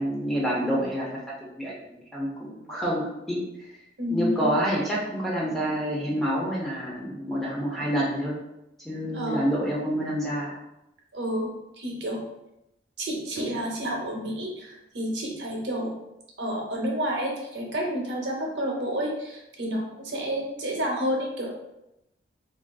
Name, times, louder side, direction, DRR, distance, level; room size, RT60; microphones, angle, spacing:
voice 1, 0.0-3.4 4.1-8.4 8.8-10.5, equal, ahead, -6 dB, 0.6 m, -28 dB
voice 2, 4.0-4.6 9.1-9.5 11.1-12.2 13.0-15.9 16.4-21.5, equal, 85° right, -1 dB, 0.7 m, -30 dB
3.5 x 2.4 x 2.3 m, 0.87 s
head